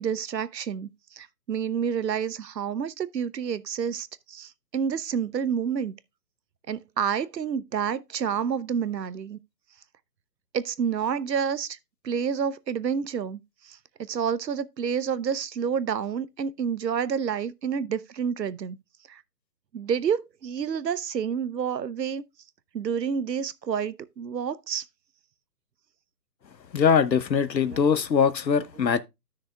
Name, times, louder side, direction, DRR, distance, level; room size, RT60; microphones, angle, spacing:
voice 1, 0.0-5.9 6.7-9.4 10.5-11.8 12.0-18.8 19.1-19.2 19.7-22.2 22.7-24.8 27.7-27.9, right 7 dB, 75° right, 0.9 m, -29 dB
voice 2, 26.7-29.0, left 6 dB, 90° left, 1.0 m, -22 dB
13.5 x 6.3 x 2.2 m
hypercardioid pair, 155°, 50 cm